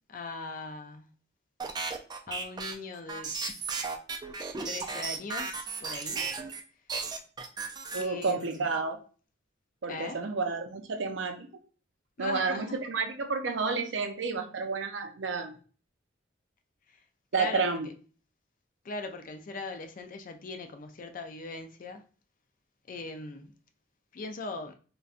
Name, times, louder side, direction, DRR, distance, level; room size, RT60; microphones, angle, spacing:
voice 1, 0.1-1.1 2.3-3.4 4.6-6.3 8.0-8.7 9.9-10.2 12.2-12.8 16.9-17.0 17.3-17.9 18.8-22.0 22.9-23.5 24.1-24.7, left 3 dB, 45° left, 0.4 m, -40 dB
sound 1, 1.6-6.6 6.9-8.6, right 4 dB, 20° right, 0.3 m, -35 dB
voice 2, 7.9-9.0 9.8-11.5 12.2-15.6 17.3-17.9, right 4 dB, 75° right, 0.5 m, -30 dB
3.9 x 2.2 x 2.4 m
head